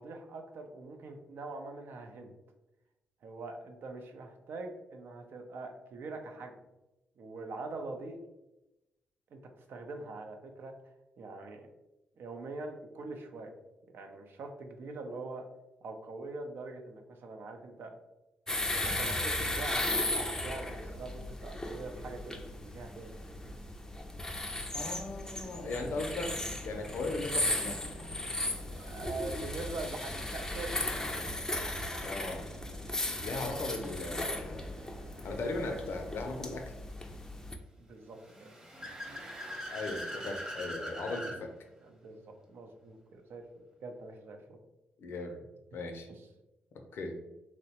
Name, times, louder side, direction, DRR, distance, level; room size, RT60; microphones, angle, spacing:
voice 1, 0.0-2.3 3.2-6.5 7.2-8.2 9.3-9.4 9.7-10.7 11.2-11.7 12.2-13.5 13.9-15.5 15.8-17.9 18.7-23.2 28.8-31.2 37.8-38.5 41.8-43.4 43.8-44.6 46.1-46.2, right 3 dB, 65° right, 4 dB, 0.4 m, -43 dB
sound 1, 18.5-37.6, left 1 dB, 15° left, 0.4 m, -36 dB
voice 2, 24.7-26.3 26.6-27.9 32.0-32.4 33.2-34.7 35.2-36.7 39.7-41.5 45.0-45.4 45.7-46.1 46.9-47.1, left 2 dB, 70° left, 4 dB, 0.5 m, -37 dB
sound 2, 26.5-36.5, equal, 85° right, 1.2 m, -51 dB
Car / Accelerating revving vroom, 38.2-41.4, equal, 15° right, 0.8 m, -41 dB
2.9 x 2.1 x 2.8 m, 0.98 s
supercardioid pair, 55°, 4 cm